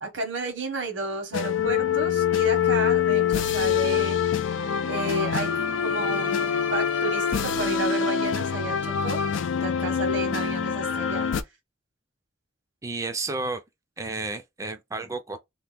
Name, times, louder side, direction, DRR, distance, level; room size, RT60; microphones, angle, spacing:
voice 1, 0.0-4.2 4.9-5.5 5.8-9.2 9.6-11.3, right 2 dB, 80° right, 1.3 m, -32 dB
sound 1, 1.3-11.4, left 7 dB, 80° left, 0.4 m, -25 dB
voice 2, 12.8-13.6 14.0-15.4, right 3 dB, 15° right, 0.4 m, -31 dB
2.9 x 2.2 x 3.4 m
head